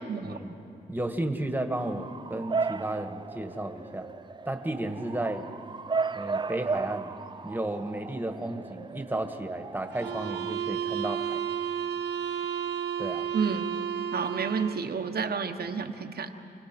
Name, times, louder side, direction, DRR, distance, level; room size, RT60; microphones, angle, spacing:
voice 1, 0.2-0.5 0.9-4.1 4.4-5.4 6.1-7.1 7.4-11.4 13.0-13.3, right 1 dB, 10° right, 6 dB, 1.7 m, -33 dB
Bark / Motor vehicle (road) / Siren, 1.8-10.5, right 4 dB, 25° right, 0.4 m, -35 dB
sound 1, 9.9-14.9, right 8 dB, 85° right, 0.8 m, -32 dB
voice 2, 13.3-13.7 14.1-16.3, right 5 dB, 65° right, 5 dB, 1.2 m, -30 dB
28.5 x 18.5 x 6.1 m, 2.7 s
cardioid pair, 80°, 17 cm